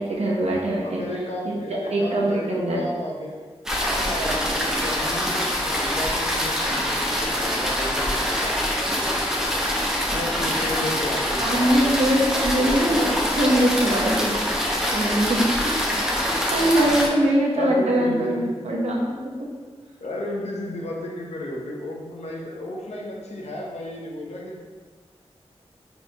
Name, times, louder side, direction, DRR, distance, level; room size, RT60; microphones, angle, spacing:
voice 1, 0.0-1.0 1.5-1.6 1.9-2.9 7.5-7.6 11.4-14.4 14.9-15.5 16.5-19.0, right 1 dB, 75° right, -3 dB, 1.0 m, -22 dB
voice 2, 0.8-3.4 3.8-8.6 10.1-11.7 16.6-16.7 17.6-18.7 20.0-24.6, left 1 dB, 80° left, -2 dB, 0.9 m, -33 dB
sound 1, 3.7-17.1, equal, 5° right, 0.7 m, -24 dB
4.5 x 3.9 x 2.8 m, 1.4 s
wide cardioid pair, 100°, 11 cm